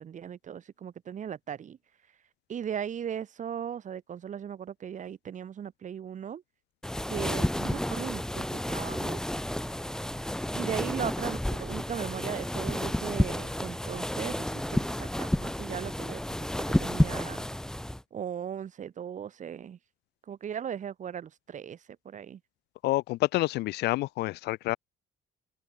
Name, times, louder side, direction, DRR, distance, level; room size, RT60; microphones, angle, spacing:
voice 1, 0.0-1.8 2.5-6.4 7.1-9.2 10.5-16.5 16.8-17.4 18.1-19.8 20.3-21.8 22.0-22.4, right 8 dB, 45° right, 4.9 m, -37 dB
sound 1, 6.8-18.0, left 1 dB, 5° left, 2.8 m, -31 dB
voice 2, 22.8-24.8, left 18 dB, 75° left, 0.6 m, -28 dB
open air
cardioid pair, 110°, 17 cm